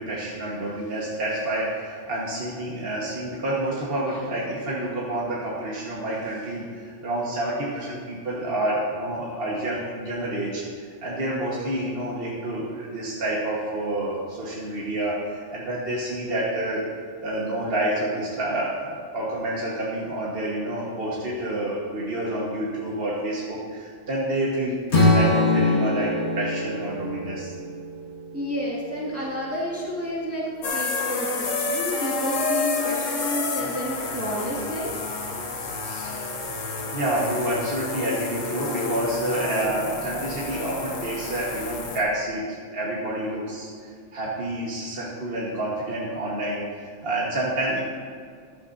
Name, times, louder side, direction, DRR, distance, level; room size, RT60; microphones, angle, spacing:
voice 1, 0.0-27.5 35.6-36.4 36.9-47.8, right 1 dB, 50° right, -5 dB, 1.7 m, -28 dB
Strum, 24.9-29.1, left 2 dB, 60° left, 2.1 m, -23 dB
voice 2, 28.3-35.0, equal, 10° right, -6 dB, 1.9 m, -30 dB
sound 1, 30.6-42.0, left 3 dB, 90° left, 1.6 m, -29 dB
14.0 x 12.0 x 2.7 m, 2.1 s
omnidirectional pair, 1.3 m